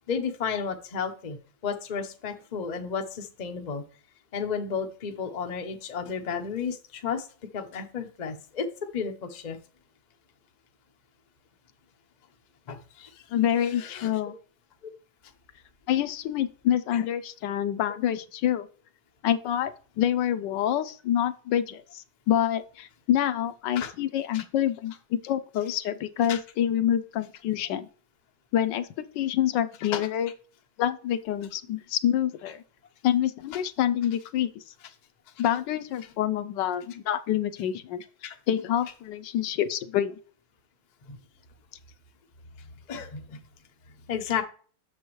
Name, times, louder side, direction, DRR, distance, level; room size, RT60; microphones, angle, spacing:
voice 1, 0.1-1.4 1.6-3.8 4.3-7.3 7.5-8.7 8.9-9.6 12.7-13.2 13.8-14.3 14.8-14.9 16.9-17.0 23.8-23.9 24.3-24.4 26.3-26.4 29.9-30.0 38.2-38.4 41.1-41.2 42.9-43.4 44.1-44.4, left 6 dB, 50° left, 6 dB, 0.5 m, -32 dB
voice 2, 13.3-14.3 15.9-18.7 19.2-24.9 25.2-27.9 28.5-30.3 30.8-32.6 33.0-34.6 35.4-38.0 38.5-40.1, left 10 dB, 75° left, 11 dB, 1.2 m, -27 dB
7.9 x 6.9 x 3.1 m, 0.41 s
omnidirectional pair, 2.1 m